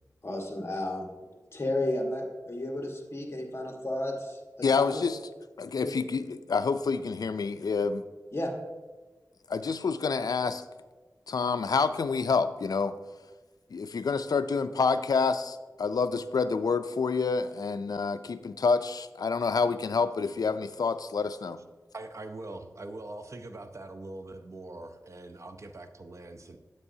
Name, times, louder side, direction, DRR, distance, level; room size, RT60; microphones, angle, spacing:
voice 1, 0.2-1.1 1.5-5.1 5.8-5.9 8.3-8.5, left 1 dB, 40° left, 1 dB, 1.4 m, -33 dB
voice 2, 4.6-5.2 5.6-8.0 9.5-10.6 11.3-13.0 13.7-21.6, left 5 dB, 75° left, 11 dB, 0.4 m, -28 dB
voice 3, 21.9-26.6, right 2 dB, 50° right, 7 dB, 0.7 m, -42 dB
9.7 x 8.2 x 2.7 m, 1.3 s
wide cardioid pair, 50°, 7 cm